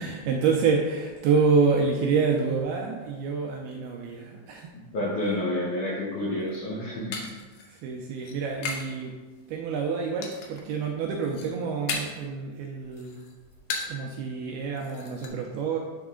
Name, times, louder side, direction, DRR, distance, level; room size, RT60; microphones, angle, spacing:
voice 1, 0.0-4.7 7.8-9.1 9.5-13.2 13.9-15.8, right 5 dB, 80° right, 0 dB, 2.3 m, -27 dB
voice 2, 4.9-7.3, left 1 dB, 70° left, -6 dB, 2.0 m, -29 dB
sound 1, 6.4-9.0 9.3-9.8 10.2-10.7 11.1-12.3 12.7-14.1 14.4-14.5 14.8-15.3, left 4 dB, 90° left, 1.9 m, -36 dB
9.6 x 4.0 x 3.7 m, 1.3 s
omnidirectional pair, 4.9 m